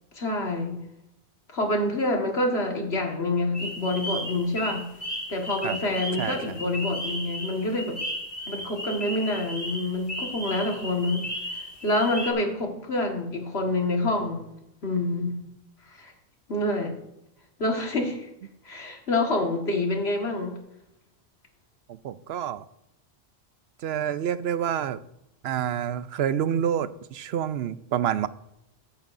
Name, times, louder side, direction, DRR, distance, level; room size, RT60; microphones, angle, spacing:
voice 1, 0.2-0.8 1.5-4.9 5.3-8.0 8.5-11.3 11.8-14.4 14.8-15.4 15.9-16.1 16.5-16.9 17.6-18.3 18.7-20.6, left 2 dB, 85° left, 2 dB, 2.0 m, -27 dB
sound 1, 3.5-12.3, equal, 65° left, 2.6 m, -35 dB
voice 2, 22.0-22.6 23.8-25.0 25.4-28.3, right 9 dB, 80° right, 15 dB, 0.8 m, -28 dB
14.0 x 10.5 x 2.6 m, 0.85 s
omnidirectional pair, 1.0 m